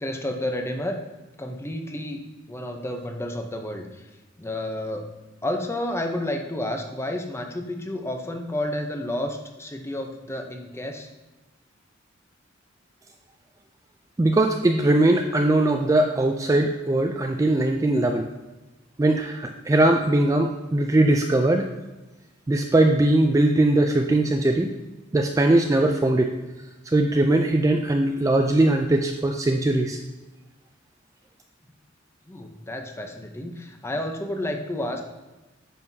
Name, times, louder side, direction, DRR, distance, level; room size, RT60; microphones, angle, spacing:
voice 1, 0.0-1.0 1.4-4.1 4.4-5.1 5.4-11.1 19.9-20.0 32.3-35.0, left 1 dB, 15° left, 4 dB, 0.7 m, -31 dB
voice 2, 14.2-18.3 19.0-21.7 22.5-24.7 25.1-26.3 26.9-30.0, right 2 dB, 15° right, 4 dB, 0.3 m, -20 dB
9.3 x 5.5 x 2.7 m, 1.1 s
head